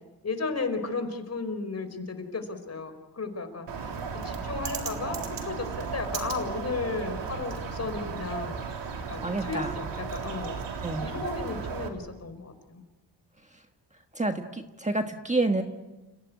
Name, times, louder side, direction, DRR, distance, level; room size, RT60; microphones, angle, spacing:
voice 1, 0.2-3.9 4.2-8.7 9.1-12.8, left 4 dB, 35° left, 8 dB, 4.7 m, -34 dB
Bird, 3.7-11.9, right 5 dB, 85° right, 3.8 m, -35 dB
voice 2, 9.2-9.8 10.8-11.1 14.1-15.6, right 2 dB, 15° right, 5 dB, 1.5 m, -28 dB
30.0 x 17.0 x 9.5 m, 1.1 s
cardioid pair, 95°, 42 cm